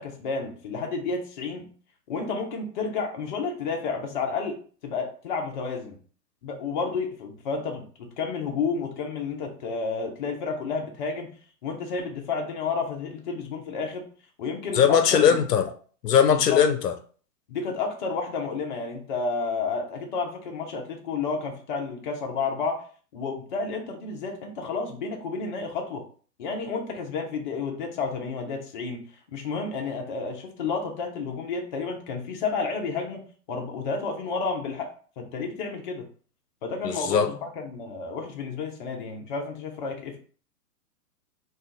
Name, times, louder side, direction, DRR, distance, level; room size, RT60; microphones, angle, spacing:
voice 1, 0.0-1.7 2.1-6.0 6.4-11.3 11.6-14.1 14.4-15.4 16.3-16.7 17.5-22.8 23.1-26.0 26.4-29.0 29.3-34.9 35.2-36.1 36.6-40.2, left 4 dB, 30° left, 0.5 m, -31 dB
voice 2, 14.7-15.6 16.0-16.9 36.8-37.3, left 8 dB, 80° left, 0.6 m, -20 dB
2.4 x 2.3 x 3.8 m
figure-of-eight pair, 120°, 47 cm